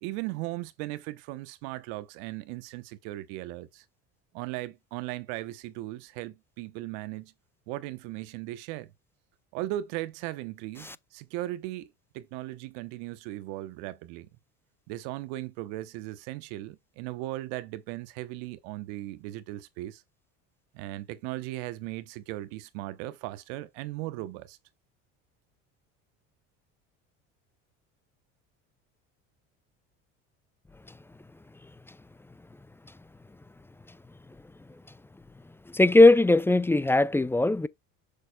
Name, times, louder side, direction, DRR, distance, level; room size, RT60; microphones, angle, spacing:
voice 1, 0.0-3.8 4.3-7.3 7.7-8.9 9.5-14.3 14.9-20.0 20.7-24.6, right 16 dB, 80° right, 0.9 m, -37 dB
voice 2, 35.7-37.7, left 2 dB, 5° left, 0.3 m, -19 dB
6.8 x 6.3 x 2.2 m
supercardioid pair, 90°, 35 cm